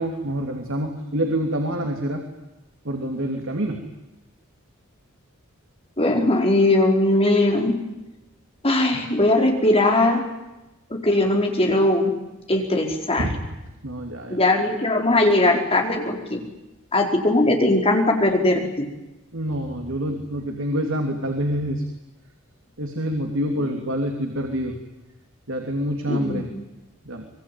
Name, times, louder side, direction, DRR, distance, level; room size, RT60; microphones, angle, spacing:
voice 1, 0.0-2.3 2.8-3.8 13.2-13.4 13.8-14.4 19.3-21.8 22.8-24.8 25.5-26.5 27.0-27.2, equal, 65° right, 3 dB, 3.1 m, -26 dB
voice 2, 6.0-7.7 8.6-10.2 10.9-12.1 12.5-13.3 14.3-16.4 16.9-18.9 26.1-26.5, left 2 dB, 25° left, 2 dB, 4.7 m, -19 dB
25.0 x 22.5 x 9.3 m, 0.99 s
head